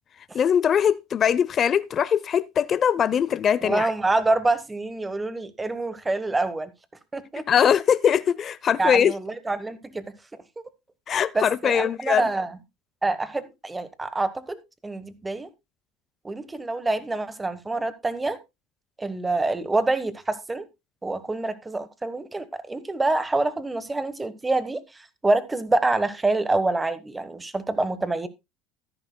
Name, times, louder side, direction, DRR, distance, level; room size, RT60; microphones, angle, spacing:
voice 1, 0.3-3.9 7.3-9.1 11.1-12.3, left 8 dB, 35° left, 0.5 m, -21 dB
voice 2, 3.6-6.7 7.1-7.4 8.8-10.0 11.3-12.5 13.0-15.5 16.2-18.4 19.0-20.7 21.0-24.8 25.2-28.3, right 2 dB, 15° right, 1.2 m, -26 dB
13.0 x 11.0 x 2.2 m
supercardioid pair, 110°, 0 cm